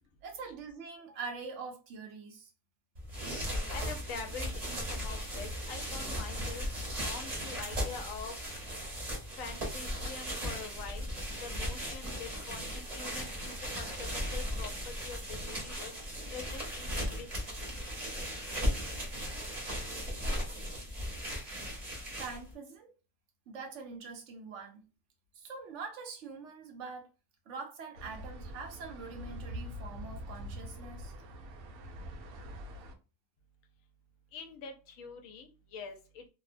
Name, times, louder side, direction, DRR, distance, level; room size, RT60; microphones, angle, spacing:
voice 1, 0.2-2.5 22.2-22.9 23.5-24.8 25.3-27.1 27.5-31.1, right 4 dB, 65° right, 0.9 m, -44 dB
sound 1, 2.9-22.5, equal, 35° right, 0.8 m, -37 dB
voice 2, 3.7-6.7 6.9-8.3 9.4-11.1 11.4-14.7 15.0-15.9 16.3-17.3 34.3-36.3, left 5 dB, 70° left, 1.0 m, -45 dB
sound 2, 27.9-32.9, equal, 90° right, 1.0 m, -44 dB
2.8 x 2.1 x 2.5 m
omnidirectional pair, 1.5 m